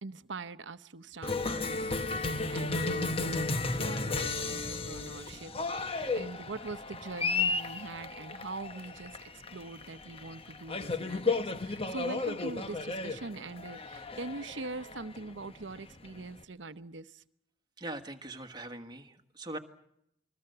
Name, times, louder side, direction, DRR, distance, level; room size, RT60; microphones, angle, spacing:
voice 1, 0.0-17.2, right 3 dB, 75° right, 12 dB, 0.9 m, -43 dB
Cheering, 1.2-16.4, left 3 dB, 30° left, 1.0 m, -34 dB
voice 2, 17.8-19.6, right 1 dB, 25° right, 5 dB, 1.6 m, -41 dB
28.0 x 21.5 x 6.8 m, 0.78 s
head